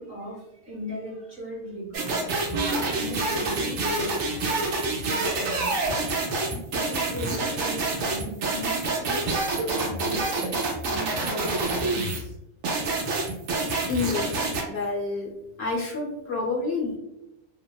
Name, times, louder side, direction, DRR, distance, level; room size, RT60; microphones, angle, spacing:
voice 1, 0.0-2.6 2.9-4.6 5.1-5.8 6.9-9.3 9.7-12.3, right 1 dB, 55° right, -5 dB, 1.1 m, -38 dB
sound 1, 1.9-12.2 12.6-14.6, right 2 dB, 85° right, 1.0 m, -27 dB
voice 2, 13.9-15.3 15.6-17.0, left 3 dB, 60° left, -3 dB, 0.8 m, -29 dB
2.8 x 2.0 x 2.2 m, 0.88 s
omnidirectional pair, 1.3 m